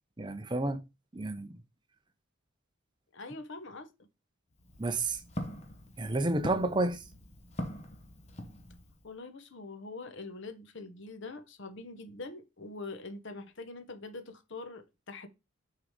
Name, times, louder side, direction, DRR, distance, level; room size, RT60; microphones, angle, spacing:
voice 1, 0.2-0.8 1.1-1.6 4.8-5.2 6.0-7.0, right 2 dB, 20° right, 0.6 m, -30 dB
voice 2, 3.1-4.1 9.0-15.3, left 3 dB, 55° left, 1.0 m, -44 dB
Walk footsteps, 4.5-9.1, equal, 30° left, 1.0 m, -42 dB
6.3 x 3.9 x 4.9 m
head